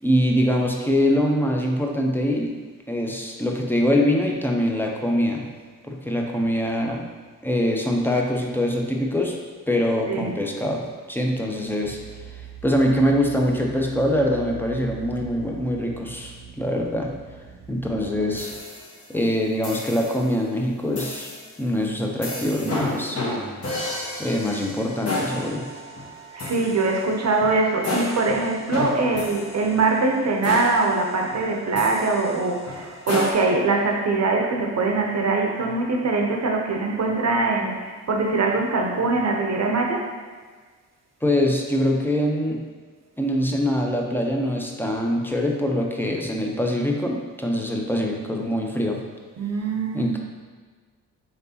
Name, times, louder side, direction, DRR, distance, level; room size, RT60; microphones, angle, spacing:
voice 1, 0.0-2.5 2.9-5.4 5.9-7.0 7.4-9.4 9.7-10.8 11.1-12.2 12.6-17.1 17.7-18.5 19.1-21.3 21.6-23.2 24.2-25.6 41.2-42.6 43.2-49.0 49.9-50.2, left 1 dB, 5° left, 0 dB, 0.7 m, -23 dB
voice 2, 10.1-10.4 26.3-40.1 49.4-50.1, right 3 dB, 45° right, 2 dB, 0.7 m, -23 dB
sound 1, 11.8-18.6, right 9 dB, 85° right, 0.6 m, -42 dB
sound 2, 18.4-19.1 19.6-20.3 20.9-21.5 22.2-33.3, left 2 dB, 40° left, 1.1 m, -32 dB
3.9 x 3.3 x 2.8 m, 1.5 s
supercardioid pair, 45°, 39 cm